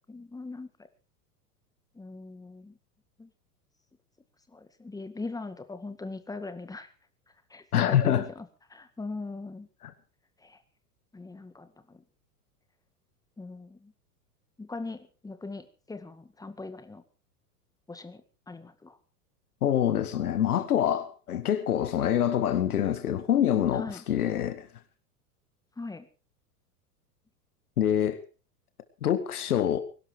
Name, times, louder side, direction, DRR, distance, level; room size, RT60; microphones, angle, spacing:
voice 1, 0.1-0.7 2.0-2.8 3.2-3.3 4.5-6.9 7.5-9.7 10.4-10.6 11.1-12.0 13.4-13.9 14.6-17.0 17.9-19.0 23.7-24.0 25.8-26.1, left 3 dB, 5° left, 1.9 m, -40 dB
voice 2, 7.7-8.3 9.8-9.9 19.6-24.7 27.8-28.2 29.0-29.8, left 10 dB, 65° left, 1.9 m, -25 dB
22.0 x 12.0 x 4.9 m
figure-of-eight pair, 90°, 48 cm